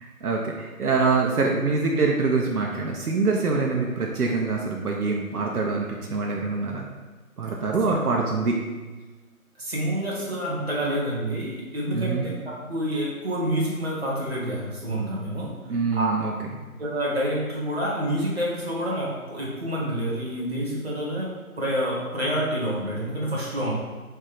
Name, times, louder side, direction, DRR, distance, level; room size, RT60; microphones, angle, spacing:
voice 1, 0.0-6.9 7.4-8.6 11.9-12.3 15.6-16.3, right 4 dB, 80° right, -1 dB, 0.7 m, -25 dB
voice 2, 9.6-12.4 12.6-15.5 15.9-16.1 16.8-23.7, equal, 45° right, -5 dB, 1.0 m, -28 dB
3.2 x 2.6 x 3.9 m, 1.3 s
figure-of-eight pair, 175°, 44 cm